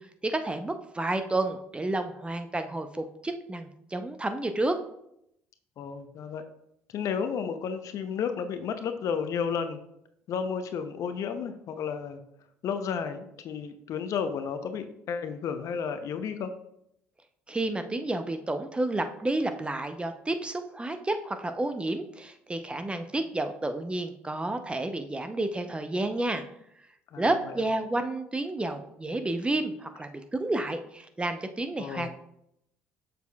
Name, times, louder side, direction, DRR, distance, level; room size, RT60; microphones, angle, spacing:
voice 1, 0.2-4.8 17.5-26.4 27.2-32.2, right 2 dB, 15° right, 8 dB, 0.6 m, -30 dB
voice 2, 5.8-6.4 6.9-9.8 10.3-12.2 12.6-16.5 27.1-27.5 31.8-32.1, left 6 dB, 55° left, 9 dB, 0.7 m, -32 dB
6.9 x 6.3 x 2.3 m, 0.77 s
hypercardioid pair, 60°, 7 cm